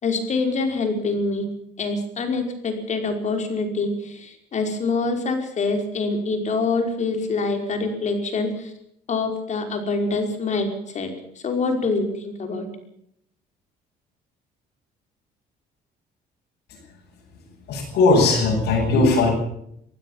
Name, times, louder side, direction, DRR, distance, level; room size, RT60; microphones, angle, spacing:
voice 1, 0.0-1.5 1.8-8.7 9.1-11.1 11.4-12.7, left 3 dB, 45° left, 5 dB, 5.2 m, -25 dB
voice 2, 17.7-19.3, left 3 dB, 75° left, -3 dB, 7.8 m, -18 dB
23.5 x 16.0 x 7.3 m, 0.72 s
cardioid pair, 110°, 17 cm